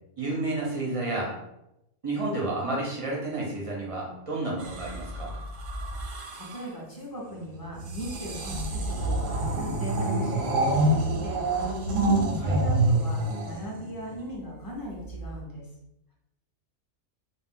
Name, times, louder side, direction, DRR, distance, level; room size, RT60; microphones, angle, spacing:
voice 1, 0.2-1.3 2.0-5.3 12.4-12.6, right 2 dB, 45° right, -3 dB, 0.4 m, -31 dB
sound 1, 4.6-6.7 7.8-14.2 15.1-15.4, right 2 dB, 85° right, 1.0 m, -27 dB
voice 2, 6.0-15.7, left 1 dB, 30° left, -3 dB, 0.4 m, -38 dB
2.4 x 2.1 x 3.6 m, 0.85 s
omnidirectional pair, 1.3 m